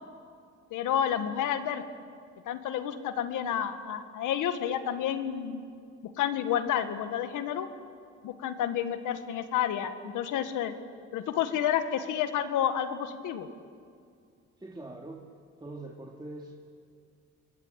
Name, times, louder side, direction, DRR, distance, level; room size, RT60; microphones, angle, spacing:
voice 1, 0.7-1.8 2.5-5.7 6.0-7.7 8.2-10.7 11.1-13.5, left 9 dB, 90° left, 9 dB, 1.8 m, -30 dB
voice 2, 14.6-15.3 15.6-16.7, right 2 dB, 15° right, -1 dB, 2.6 m, -43 dB
28.0 x 22.0 x 8.3 m, 2.3 s
cardioid pair, 90°, 30 cm